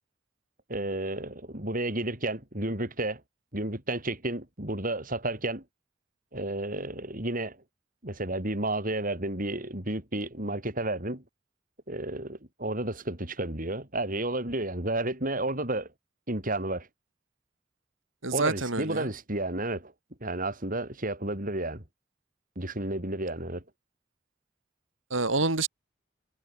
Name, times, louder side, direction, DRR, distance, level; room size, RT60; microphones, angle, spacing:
voice 1, 0.7-3.2 3.5-5.6 6.3-7.6 8.0-11.2 11.9-15.9 16.3-16.9 18.3-19.9 20.2-21.8 22.6-23.6, right 2 dB, 45° right, 6.0 m, -31 dB
voice 2, 18.2-19.1 25.1-25.7, right 3 dB, 75° right, 3.9 m, -27 dB
head